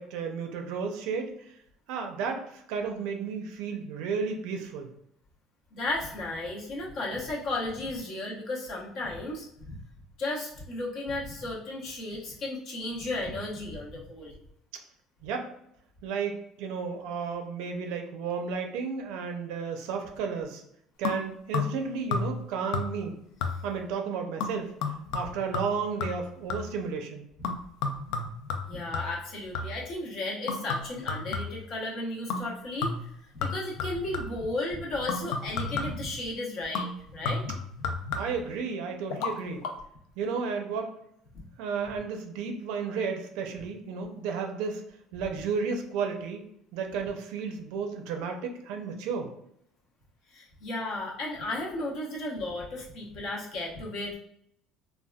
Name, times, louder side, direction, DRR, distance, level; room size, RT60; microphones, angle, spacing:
voice 1, 0.0-1.5 1.9-4.9 15.2-15.5 16.0-20.6 21.0-23.2 23.6-24.7 25.1-27.3 38.1-39.7 40.2-40.9 41.6-44.8 45.1-46.5 46.7-49.3, right 5 dB, 80° right, 4 dB, 0.5 m, -33 dB
voice 2, 5.7-9.8 10.2-14.4 28.7-32.9 33.3-37.4 41.3-41.4 50.3-54.2, left 2 dB, 50° left, -4 dB, 0.8 m, -34 dB
sound 1, 21.0-21.8 22.1-22.5 22.7-23.1 23.4-23.8 24.4-26.8 27.4-29.9 30.5-31.7 32.3-32.5 32.8-34.5 35.1-36.1 36.7-38.5 39.1-39.3 39.6-39.7, left 4 dB, 80° left, 0.4 m, -33 dB
3.4 x 2.3 x 2.3 m, 0.72 s
cardioid pair, 165°, 0 cm